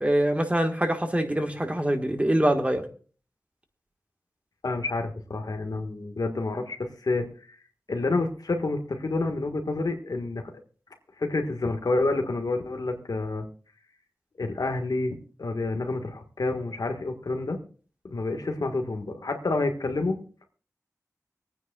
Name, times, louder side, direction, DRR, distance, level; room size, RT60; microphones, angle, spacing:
voice 1, 0.0-2.8, right 1 dB, 20° right, 5 dB, 1.5 m, -24 dB
voice 2, 4.6-7.3 7.9-10.4 11.2-13.5 14.4-17.6 18.0-20.2, left 2 dB, 85° left, 4 dB, 1.5 m, -28 dB
25.0 x 9.3 x 2.3 m, 0.41 s
wide cardioid pair, 60°, 6 cm